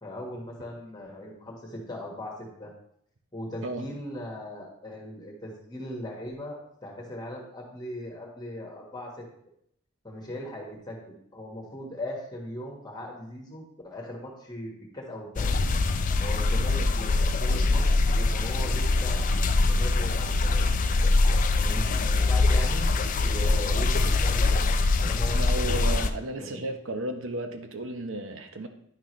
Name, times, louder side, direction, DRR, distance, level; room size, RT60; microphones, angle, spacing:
voice 1, 0.0-2.7 3.3-9.2 10.0-15.6 16.2-19.3 19.7-20.7 21.5-24.7 25.0-26.6, left 1 dB, 20° left, -1 dB, 1.4 m, -39 dB
sound 1, 15.4-26.1, left 3 dB, 35° left, 0.4 m, -23 dB
voice 2, 25.3-28.7, right 1 dB, 60° right, 7 dB, 0.8 m, -34 dB
10.5 x 5.9 x 3.2 m, 0.70 s
head